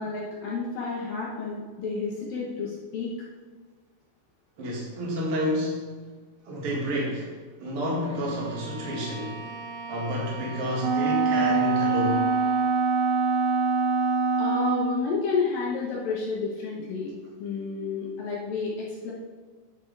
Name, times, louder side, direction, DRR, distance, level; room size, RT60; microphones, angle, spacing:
voice 1, 0.0-3.1 14.4-17.1 17.4-19.1, left 4 dB, 70° left, -4 dB, 2.3 m, -30 dB
voice 2, 4.6-5.9 6.5-7.3 7.6-9.4 9.9-12.3, equal, 45° right, -3 dB, 1.9 m, -29 dB
Bowed string instrument, 7.9-12.8, right 3 dB, 65° right, 2.7 m, -41 dB
Wind instrument woodwind instrument, 10.8-15.1, right 4 dB, 85° right, 2.1 m, -24 dB
10.5 x 6.0 x 3.4 m, 1.5 s
omnidirectional pair, 5.2 m